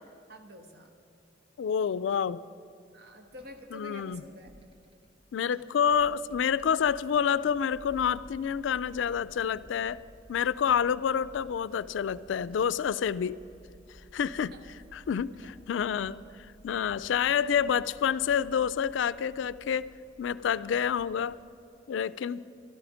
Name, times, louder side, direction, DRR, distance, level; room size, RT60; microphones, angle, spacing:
voice 1, 0.3-0.9 2.9-4.5 14.5-14.6 15.4-15.5, left 1 dB, 60° right, 5 dB, 1.3 m, -48 dB
voice 2, 1.6-2.4 3.7-4.2 5.3-10.0 10.3-13.4 14.1-19.9 20.2-21.4 21.9-22.4, left 7 dB, 80° left, 18 dB, 0.3 m, -28 dB
sound 1, 3.3-21.4, equal, 30° right, 1.0 m, -55 dB
12.5 x 12.0 x 5.0 m, 2.8 s
head